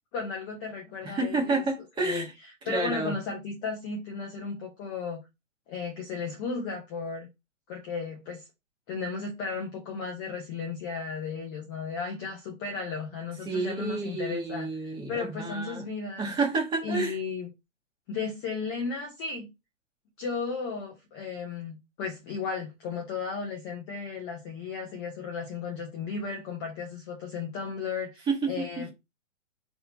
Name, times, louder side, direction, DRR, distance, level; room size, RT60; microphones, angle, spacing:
voice 1, 0.1-1.6 2.0-2.3 2.7-5.2 5.7-7.3 7.7-8.4 8.9-14.7 15.1-16.3 16.8-17.5 18.1-19.5 20.2-28.9, left 4 dB, 15° left, 0.6 m, -34 dB
voice 2, 1.0-2.3 2.6-3.1 13.4-15.9 16.2-17.2 28.3-28.9, right 3 dB, 10° right, 1.4 m, -30 dB
4.0 x 2.9 x 3.9 m
figure-of-eight pair, 130°, 39 cm